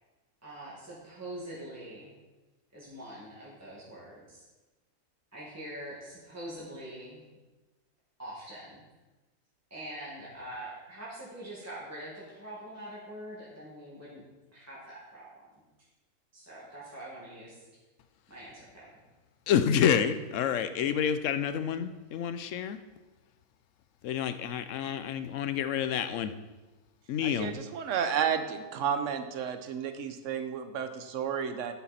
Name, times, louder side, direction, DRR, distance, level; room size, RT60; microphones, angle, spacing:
voice 1, 0.4-2.1 2.7-4.4 5.3-7.2 8.2-8.8 9.7-14.2 14.5-15.5 16.3-17.6 18.3-18.9, right 1 dB, 10° right, -7 dB, 1.8 m, -44 dB
voice 2, 19.5-22.8 24.0-26.3 27.1-27.5, left 8 dB, 65° left, 11 dB, 0.8 m, -28 dB
voice 3, 27.2-31.7, right 7 dB, 60° right, 9 dB, 1.0 m, -32 dB
11.5 x 5.9 x 4.2 m, 1.2 s
omnidirectional pair, 1.6 m